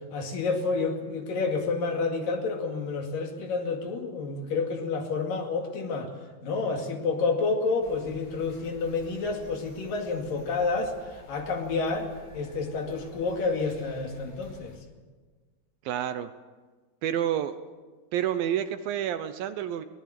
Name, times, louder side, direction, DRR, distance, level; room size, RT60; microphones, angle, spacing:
voice 1, 0.1-6.1 6.4-12.1 12.3-14.8, left 4 dB, 60° left, 3 dB, 3.8 m, -29 dB
sound 1, 7.8-14.8, left 2 dB, 20° left, 3.4 m, -52 dB
voice 2, 15.9-16.3 17.0-17.6 18.1-19.8, right 10 dB, 75° right, 11 dB, 2.4 m, -29 dB
22.5 x 19.0 x 7.6 m, 1.4 s
omnidirectional pair, 4.5 m